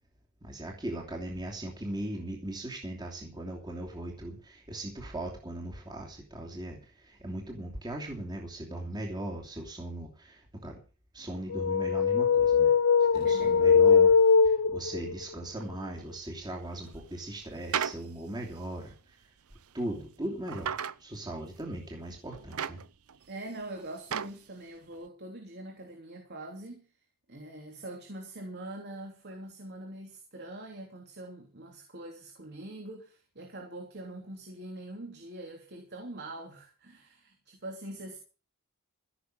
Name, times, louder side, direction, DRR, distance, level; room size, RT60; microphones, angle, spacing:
voice 1, 0.4-10.8 11.1-12.7 13.1-14.1 14.4-18.9 19.7-22.8, right 1 dB, 20° right, 2.9 m, -39 dB
sound 1, 11.5-15.1, left 6 dB, 65° left, 0.6 m, -21 dB
voice 2, 13.1-13.8 23.3-26.9 27.3-38.2, right 1 dB, 50° right, 3.4 m, -43 dB
sound 2, 15.6-15.7 16.8-18.0 18.6-18.7 19.6-19.9 20.5-21.0 21.6-21.7 22.3-23.3 23.6-24.4 24.9-25.0, right 8 dB, 85° right, 0.7 m, -35 dB
16.0 x 6.9 x 7.8 m
head